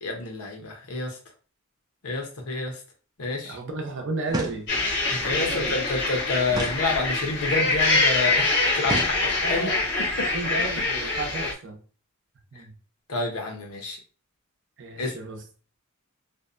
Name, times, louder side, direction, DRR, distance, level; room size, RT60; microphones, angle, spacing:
voice 1, 0.0-1.2 2.0-2.8 3.2-3.6 5.1-9.7 10.0-10.3 11.0-11.1 13.1-14.0 15.0-15.1, left 3 dB, 85° left, 2 dB, 0.8 m, -29 dB
voice 2, 3.4-4.7 5.0-5.7 9.4-9.8 10.3-11.8 12.5-12.8 14.8-15.4, right 2 dB, 60° right, 3 dB, 0.6 m, -33 dB
sound 1, 4.3-5.0 6.5-7.5 8.8-9.7, right 2 dB, 20° right, 0.4 m, -33 dB
sound 2, 4.7-11.5, left 2 dB, 55° left, 0.7 m, -25 dB
2.6 x 2.1 x 2.5 m, 0.37 s
head